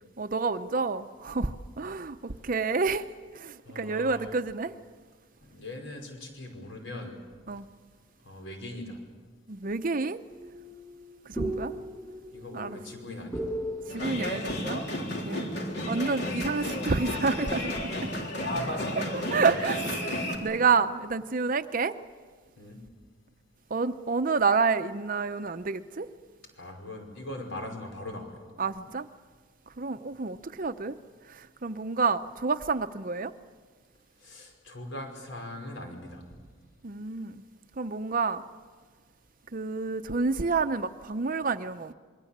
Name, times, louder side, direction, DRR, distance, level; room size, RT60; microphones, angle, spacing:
voice 1, 0.2-3.1 3.3-4.7 7.5-7.7 9.5-10.2 11.3-11.7 12.5-12.8 13.9-14.8 15.2-15.5 15.9-17.9 19.0-21.9 23.7-26.1 28.6-29.1 29.8-31.0 31.3-33.3 36.8-37.4 37.8-38.4 39.5-41.9, right 4 dB, 45° right, 0.7 m, -29 dB
voice 2, 3.7-4.3 5.4-7.1 8.2-9.0 12.3-13.4 18.5-18.8 22.6-22.8 26.6-28.3 34.2-36.2, left 1 dB, 75° left, 5.2 m, -41 dB
sound 1, 10.3-15.9, right 1 dB, 15° left, 5.1 m, -38 dB
sound 2, 13.9-20.4, left 1 dB, 55° left, 3.8 m, -32 dB
27.5 x 22.5 x 7.4 m
head